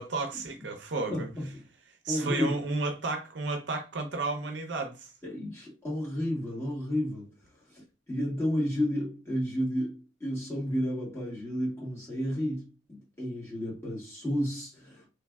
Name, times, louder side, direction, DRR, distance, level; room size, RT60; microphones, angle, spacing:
voice 1, 0.0-1.3 2.0-5.1, right 3 dB, 60° right, 0.6 m, -32 dB
voice 2, 1.1-1.6 2.1-2.6 5.2-15.1, equal, 10° left, 1.7 m, -32 dB
3.4 x 3.2 x 2.3 m
head